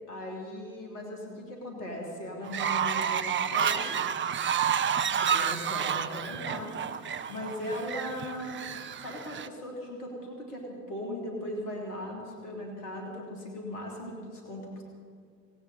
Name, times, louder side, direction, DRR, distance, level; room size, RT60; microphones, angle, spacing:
voice 1, 0.1-4.0 5.2-8.6 9.0-14.8, left 1 dB, 75° left, -1 dB, 3.1 m, -38 dB
Fowl, 2.5-9.5, right 8 dB, 25° right, 0.7 m, -30 dB
18.0 x 18.0 x 4.1 m, 2.2 s
figure-of-eight pair, 60°, 46 cm